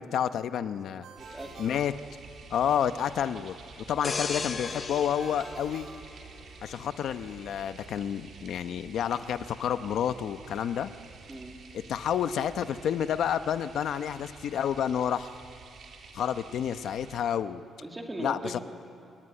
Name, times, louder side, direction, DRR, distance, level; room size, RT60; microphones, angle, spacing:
voice 1, 0.0-1.0 1.6-1.9 2.5-3.5 3.9-5.9 6.6-10.9 11.9-15.3 16.1-17.6 18.2-18.6, left 9 dB, 55° left, 11 dB, 0.9 m, -29 dB
Ringtone, 1.0-2.7 5.2-6.9, right 4 dB, 65° right, 3.5 m, -50 dB
voice 2, 1.2-1.7 11.3-11.6 17.8-18.6, right 1 dB, 10° right, 2 dB, 2.4 m, -39 dB
sound 1, 1.2-17.2, right 5 dB, 50° right, 3.6 m, -50 dB
sound 2, 4.0-6.7 7.2-7.4, left 4 dB, 25° left, 0.9 m, -36 dB
28.0 x 21.5 x 9.8 m, 2.6 s
cardioid pair, 175°, 0 cm